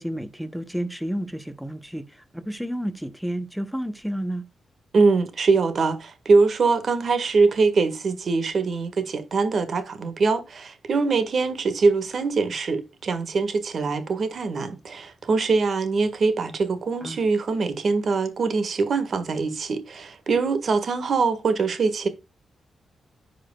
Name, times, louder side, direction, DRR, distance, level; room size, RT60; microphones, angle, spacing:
voice 1, 0.0-4.4 17.0-17.2, equal, ahead, 1.1 m, -31 dB
voice 2, 4.9-22.1, right 4 dB, 60° right, 1.6 m, -23 dB
13.0 x 5.0 x 2.3 m
cardioid pair, 75°, 0 cm